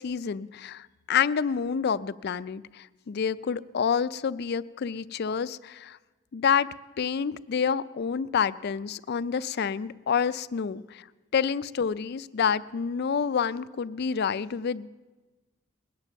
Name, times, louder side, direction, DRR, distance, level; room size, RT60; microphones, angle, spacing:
voice 1, 0.0-6.0 6.3-6.7 7.0-11.1 11.3-14.9, left 6 dB, 50° left, 16 dB, 0.4 m, -28 dB
20.5 x 9.1 x 6.9 m, 1.2 s
head